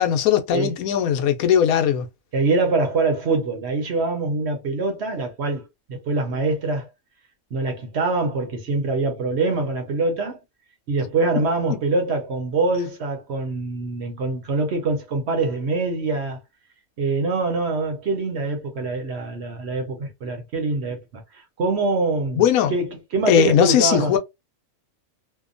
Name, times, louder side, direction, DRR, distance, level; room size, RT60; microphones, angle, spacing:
voice 1, 0.0-2.1 22.4-22.7 23.3-24.2, left 9 dB, 85° left, 1.0 m, -19 dB
voice 2, 2.3-6.9 7.5-10.4 10.9-16.4 17.0-21.2 21.6-24.2, right 3 dB, 55° right, 0.9 m, -24 dB
2.8 x 2.2 x 2.4 m
omnidirectional pair, 1.5 m